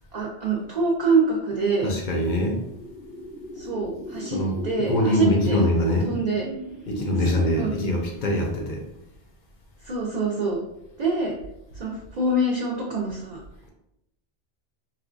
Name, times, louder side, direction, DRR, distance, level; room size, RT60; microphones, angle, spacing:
voice 1, 0.1-1.9 3.6-5.6 6.0-6.5 7.2-7.7 9.8-10.6 11.0-11.3 11.7-13.4, right 3 dB, 55° right, -2 dB, 0.5 m, -25 dB
voice 2, 1.8-2.6 4.3-4.6 4.9-6.1 6.9-8.8, left 1 dB, 55° left, 0 dB, 0.6 m, -23 dB
sound 1, 1.9-8.4, equal, 85° left, 1.3 m, -37 dB
4.2 x 2.2 x 2.4 m, 0.85 s
omnidirectional pair, 1.2 m